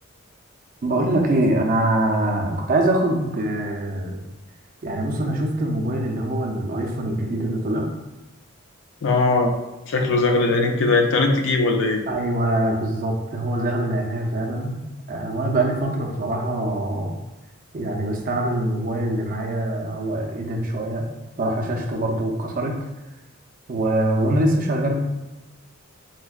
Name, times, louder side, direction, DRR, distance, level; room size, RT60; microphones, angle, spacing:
voice 1, 0.8-4.2 4.8-7.9 12.1-14.8 15.1-17.2 17.7-21.1 21.4-22.7 23.7-25.0, right 1 dB, 40° right, 1 dB, 0.4 m, -23 dB
voice 2, 9.0-9.5 9.9-12.0, left 3 dB, 65° left, 4 dB, 0.4 m, -19 dB
4.3 x 2.1 x 2.3 m, 1.0 s
head